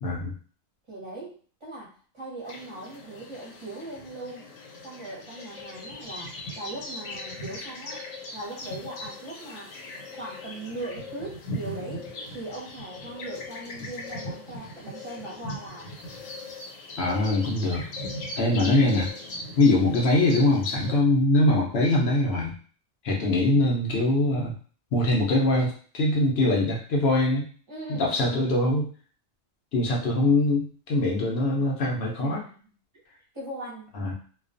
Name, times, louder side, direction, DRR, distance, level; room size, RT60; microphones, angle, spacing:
voice 1, 0.0-0.4 17.0-17.8 18.4-19.1 19.6-22.5 23.0-24.5 24.9-27.5 27.9-28.9 29.7-32.4 33.9-34.1, left 2 dB, 60° left, -1 dB, 0.7 m, -23 dB
voice 2, 0.9-4.4 4.8-8.1 8.3-9.7 10.1-15.9 18.5-18.8 27.7-28.5 32.1-32.6 33.3-33.9, right 2 dB, 25° right, -5 dB, 0.7 m, -39 dB
sound 1, 2.4-21.0, left 1 dB, 80° left, 1.1 m, -39 dB
2.3 x 2.3 x 2.5 m, 0.42 s
omnidirectional pair, 1.4 m